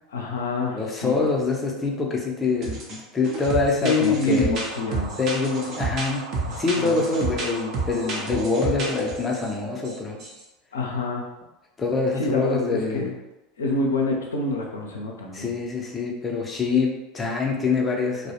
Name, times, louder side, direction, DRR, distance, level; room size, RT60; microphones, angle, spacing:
voice 1, 0.1-1.3 3.7-5.2 6.5-7.1 10.7-11.3 12.2-13.1 13.6-15.5, left 3 dB, 80° left, -1 dB, 0.5 m, -26 dB
voice 2, 0.7-4.5 5.2-6.2 6.6-10.2 11.8-13.0 15.3-18.3, left 4 dB, 20° left, -1 dB, 0.6 m, -25 dB
sound 1, 2.6-3.0 3.2-9.5 9.9-10.0 10.2-10.4, right 3 dB, 50° right, 0.6 m, -30 dB
sound 2, 4.7-9.9, right 3 dB, 85° right, 0.3 m, -39 dB
2.2 x 2.1 x 2.8 m, 1.0 s
hypercardioid pair, 80°, 0 cm